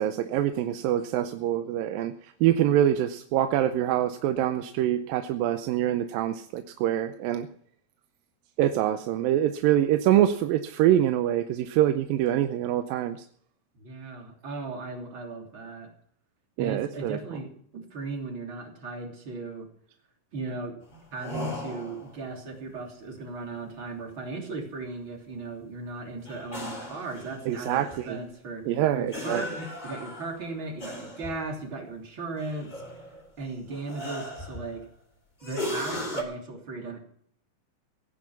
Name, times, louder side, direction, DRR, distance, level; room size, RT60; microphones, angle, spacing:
voice 1, 0.0-2.1 2.4-7.5 8.6-13.2 16.6-17.2 27.5-28.2 28.7-29.4, right 11 dB, 90° right, 9 dB, 2.5 m, -25 dB
voice 2, 13.8-15.9 16.6-19.7 20.3-20.8 21.1-28.6 28.9-32.7 33.4-34.8 35.4-37.0, right 3 dB, 35° right, 2 dB, 3.6 m, -37 dB
sound 1, 20.9-22.1 26.3-28.1 29.1-31.4 32.4-33.3 33.7-34.9 35.4-36.2, left 1 dB, 15° left, 2.2 m, -37 dB
17.5 x 10.0 x 6.0 m, 0.63 s
omnidirectional pair, 4.0 m